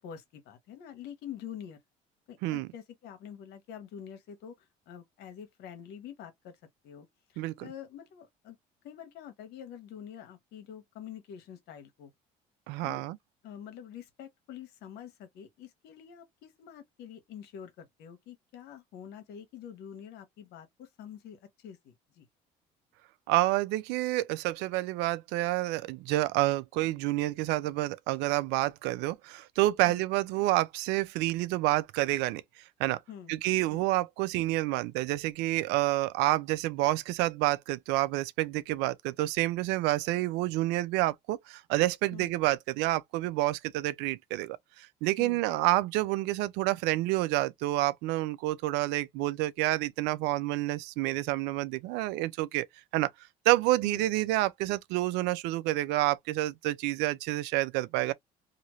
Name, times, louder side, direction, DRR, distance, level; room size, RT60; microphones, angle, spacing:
voice 1, 0.0-1.8 2.3-4.5 4.9-6.6 6.8-8.6 8.8-12.1 12.8-13.0 13.4-22.3 29.8-30.0 33.1-33.3 33.7-33.9 42.1-42.3 45.2-45.4 53.8-54.0, left 9 dB, 75° left, 1.2 m, -46 dB
voice 2, 7.4-7.7 12.7-13.2 23.3-32.4 32.8-33.0 33.3-52.7 52.9-53.1 53.5-58.1, right 17 dB, 80° right, 0.5 m, -28 dB
2.9 x 2.6 x 3.0 m
supercardioid pair, 90°, 17 cm